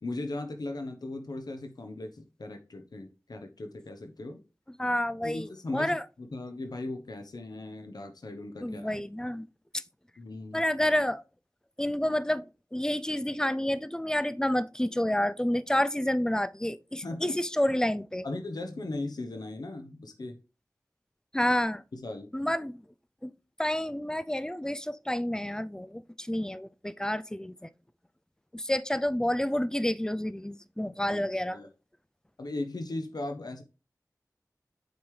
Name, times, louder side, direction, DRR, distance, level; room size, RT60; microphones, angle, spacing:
voice 1, 0.0-4.4 5.2-9.0 10.2-10.6 17.0-17.4 18.2-20.4 21.9-22.3 31.1-31.2 31.5-31.7 32.4-33.6, left 2 dB, 75° left, 0.9 m, -38 dB
voice 2, 4.8-6.0 8.6-9.5 10.5-11.2 11.8-18.2 21.3-21.8 22.3-22.8 23.2-23.3 23.6-27.7 28.5-31.6, left 1 dB, 10° left, 0.4 m, -29 dB
7.9 x 5.3 x 3.2 m
wide cardioid pair, 60°, 7 cm